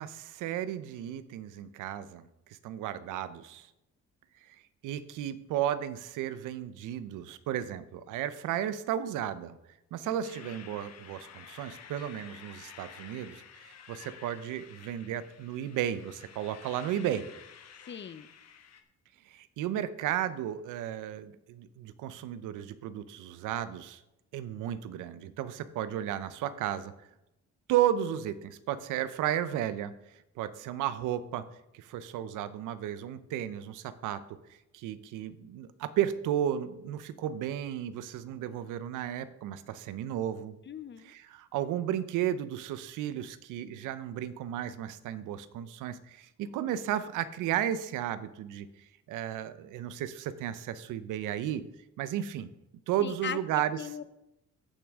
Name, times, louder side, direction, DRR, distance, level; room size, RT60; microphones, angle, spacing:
voice 1, 0.0-2.3 2.6-3.7 4.8-9.6 9.9-17.3 19.3-24.0 24.3-26.9 27.7-29.9 30.4-31.4 31.7-34.2 34.7-40.6 41.1-48.7 49.1-51.6 52.0-52.5 52.9-53.8, right 11 dB, 90° right, 13 dB, 0.7 m, -33 dB
voice 2, 10.0-10.5 17.9-18.3 40.7-41.1 53.0-53.4 53.7-54.0, left 8 dB, 40° left, 14 dB, 0.6 m, -39 dB
sound 1, 10.2-18.8, left 7 dB, 60° left, 1.1 m, -51 dB
14.5 x 6.0 x 3.6 m, 0.89 s
cardioid pair, 90°, 30 cm